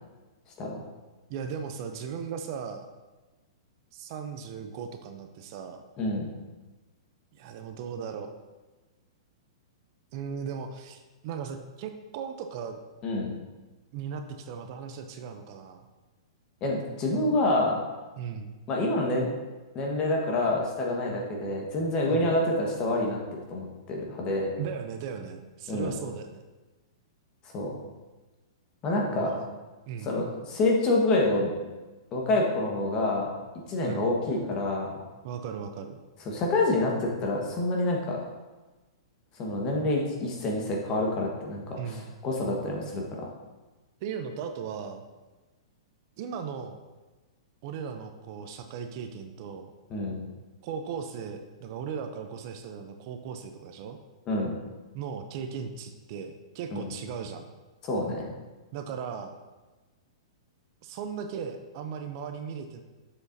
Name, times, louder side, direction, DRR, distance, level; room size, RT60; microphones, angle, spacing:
voice 1, 1.3-2.9 3.9-5.8 7.3-8.3 10.1-12.8 13.9-15.9 18.2-18.5 22.1-22.3 24.6-26.4 29.1-29.5 29.9-30.1 33.8-34.1 35.2-36.0 41.8-42.1 44.0-45.0 46.2-46.8 47.6-49.7 50.6-54.0 54.9-57.5 58.7-59.3 60.8-62.8, right 6 dB, 45° right, 7 dB, 0.5 m, -37 dB
voice 2, 6.0-6.3 13.0-13.3 16.6-17.8 18.7-19.3 19.7-23.2 23.5-24.5 25.7-25.9 27.5-27.7 28.8-29.3 30.0-31.5 32.1-33.3 33.7-35.0 36.3-38.2 39.4-43.3 49.9-50.2 54.3-54.6 56.7-56.9 57.8-58.3, left 2 dB, 30° left, -1 dB, 1.3 m, -27 dB
7.1 x 6.7 x 2.7 m, 1.2 s
hypercardioid pair, 145°, 3 cm